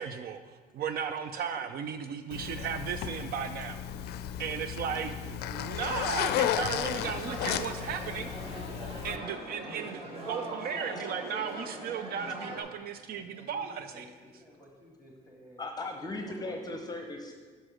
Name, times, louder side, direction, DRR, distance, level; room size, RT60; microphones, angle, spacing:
voice 1, 0.0-3.8 4.4-8.3 9.0-14.1, right 7 dB, 65° right, 9 dB, 0.4 m, -35 dB
Zipper (clothing), 2.3-9.2, left 10 dB, 75° left, 0.4 m, -34 dB
voice 2, 4.9-5.3 10.9-11.1 15.6-17.4, left 2 dB, 25° left, 4 dB, 0.7 m, -39 dB
sound 1, 7.0-12.6, right 1 dB, 35° right, 1.7 m, -41 dB
voice 3, 13.1-15.6 16.3-17.0, equal, 15° right, -2 dB, 2.1 m, -53 dB
6.2 x 5.2 x 6.2 m, 1.5 s
cardioid pair, 110°, 17 cm